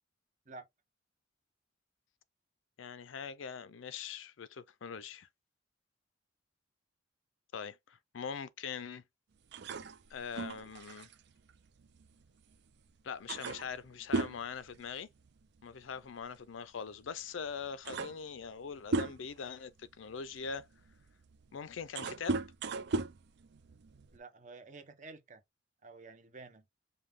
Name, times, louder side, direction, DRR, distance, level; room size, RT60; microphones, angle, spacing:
voice 1, 2.8-5.3 7.5-9.0 10.1-11.1 13.0-15.1 15.6-20.7 21.5-22.4, left 6 dB, 80° left, 0.5 m, -42 dB
sound 1, 9.5-12.5 12.9-13.0 13.3-15.5 15.7-16.0 17.0-17.1 17.5-19.5 20.1-24.2, right 3 dB, 60° right, 0.4 m, -37 dB
voice 2, 24.1-25.4 25.8-26.6, right 3 dB, 40° right, 0.8 m, -50 dB
5.2 x 2.2 x 3.5 m
head